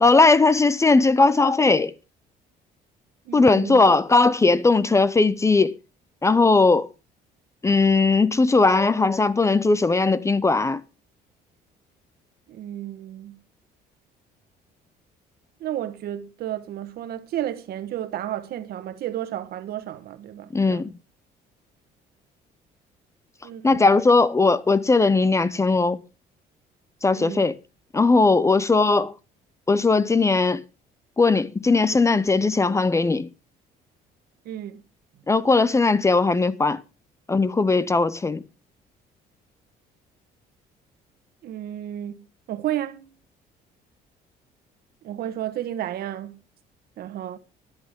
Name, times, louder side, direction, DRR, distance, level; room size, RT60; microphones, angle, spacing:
voice 1, 0.0-1.9 3.3-5.7 6.2-6.9 7.6-10.8 20.5-20.9 23.6-26.0 27.0-27.6 27.9-29.1 29.7-30.6 31.2-33.3 35.3-36.8 37.3-38.4, left 3 dB, 15° left, 0.6 m, -18 dB
voice 2, 3.2-3.9 12.5-13.4 15.6-20.9 23.4-24.0 27.1-27.5 34.4-34.8 41.4-43.1 45.0-46.4 47.0-47.4, right 12 dB, 65° right, 1.3 m, -32 dB
14.0 x 10.5 x 3.6 m
cardioid pair, 110°, 17 cm